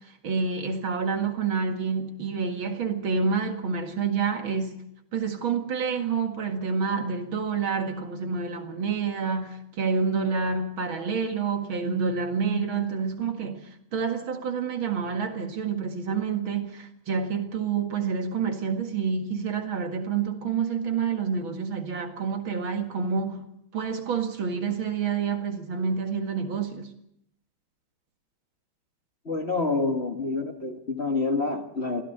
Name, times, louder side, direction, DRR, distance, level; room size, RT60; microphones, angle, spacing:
voice 1, 0.2-4.8 5.1-13.6 13.9-23.4 23.7-26.9, right 5 dB, 65° right, 2.7 m, -28 dB
voice 2, 29.3-32.0, left 3 dB, 30° left, 1.7 m, -27 dB
24.5 x 16.5 x 6.6 m
omnidirectional pair, 2.4 m